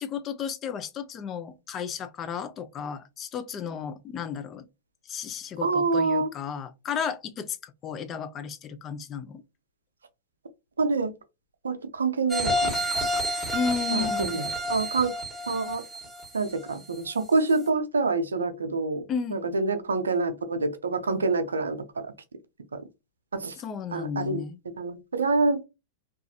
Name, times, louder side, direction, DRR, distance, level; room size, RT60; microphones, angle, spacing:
voice 1, 0.0-4.6 5.1-9.4 13.5-14.5 19.1-19.4 23.6-24.6, left 7 dB, 35° left, 0.4 m, -33 dB
voice 2, 5.6-6.3 10.8-11.1 11.6-12.7 13.9-15.1 15.5-15.8 16.3-19.0 19.3-22.1 22.7-22.8 23.3-23.6 23.9-24.4 24.8-25.6, right 3 dB, 90° right, 0.4 m, -26 dB
sound 1, 12.3-17.0 17.5-17.6, equal, 5° right, 1.2 m, -29 dB
2.4 x 2.4 x 2.6 m
hypercardioid pair, 105°, 0 cm